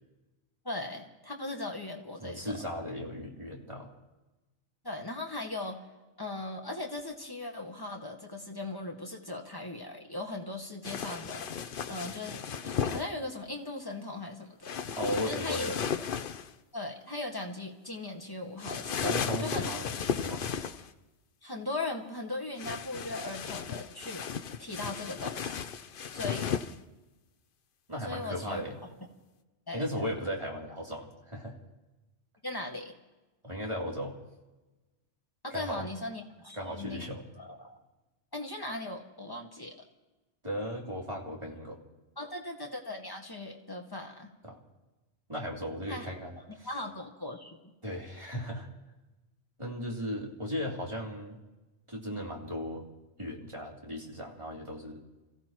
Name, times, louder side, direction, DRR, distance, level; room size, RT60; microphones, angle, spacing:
voice 1, 0.7-2.6 4.8-5.8 6.2-11.6 11.9-14.8 15.3-15.7 16.7-19.1 19.4-19.7 21.4-25.6 26.1-26.6 28.0-28.6 29.7-29.9 32.4-32.9 35.4-37.0 37.4-37.8 38.3-39.7 42.2-44.3 45.9-46.1 46.6-47.6, left 2 dB, 20° left, 1 dB, 1.8 m, -38 dB
voice 2, 2.2-3.9 14.9-15.8 19.0-19.9 20.1-20.4 27.9-28.7 29.7-31.5 33.4-34.1 35.5-35.9 36.5-37.2 40.4-41.8 44.4-44.6 45.3-46.7 47.8-48.7 49.6-51.4 51.9-52.9 53.2-55.0, equal, 25° right, -3 dB, 3.2 m, -36 dB
sound 1, 10.8-13.1 14.6-16.5 18.6-20.9 22.6-26.8, left 7 dB, 55° left, 0.8 m, -35 dB
28.5 x 16.0 x 3.1 m, 1.1 s
omnidirectional pair, 1.2 m